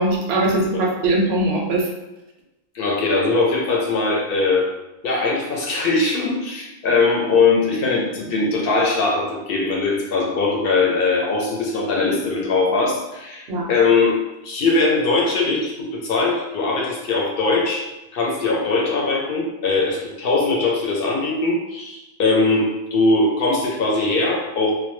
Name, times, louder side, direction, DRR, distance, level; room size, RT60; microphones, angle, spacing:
voice 1, 0.0-1.9 13.5-13.7, right 1 dB, 85° right, 0 dB, 0.8 m, -20 dB
voice 2, 2.7-4.7 5.0-14.2 14.4-17.9 18.1-24.7, left 3 dB, 65° left, -2 dB, 0.8 m, -20 dB
2.1 x 2.1 x 2.9 m, 1.0 s
omnidirectional pair, 1.0 m